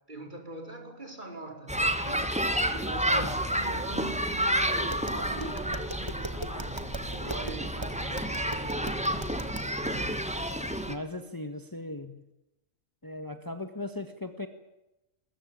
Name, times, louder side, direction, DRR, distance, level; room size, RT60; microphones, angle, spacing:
voice 1, 0.1-1.8 2.0-2.4 2.7-10.1, right 2 dB, 35° right, 3 dB, 5.2 m, -43 dB
sound 1, 1.7-10.9, equal, 5° right, 2.0 m, -30 dB
Tap, 4.8-9.8, right 2 dB, 20° right, 1.8 m, -40 dB
voice 2, 10.9-12.1 13.0-14.5, left 2 dB, 15° left, 7 dB, 1.7 m, -37 dB
22.5 x 21.0 x 8.8 m, 0.92 s
omnidirectional pair, 1.4 m